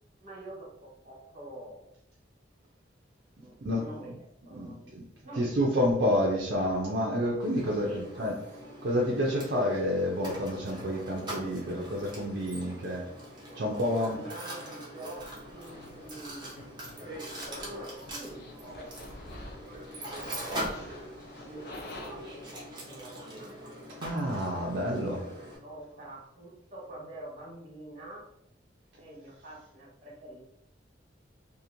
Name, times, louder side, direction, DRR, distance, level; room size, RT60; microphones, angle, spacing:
voice 1, 0.2-1.9 3.4-4.2 4.4-4.9 5.2-5.7 7.8-8.2 13.5-16.6 17.1-19.2 19.5-21.0 21.4-22.5 22.8-23.5 25.6-28.2 29.0-30.4, right 1 dB, 40° right, -4 dB, 1.2 m, -46 dB
voice 2, 3.4-3.8 4.5-5.0 5.3-8.3 8.8-13.1 13.6-14.2 24.0-25.3, equal, 60° right, -3 dB, 0.5 m, -29 dB
Mechanisms, 7.4-25.6, right 1 dB, 25° right, 0.8 m, -42 dB
sound 1, 15.1-22.7, left 1 dB, 60° left, 0.4 m, -48 dB
2.9 x 2.5 x 2.5 m, 0.77 s
head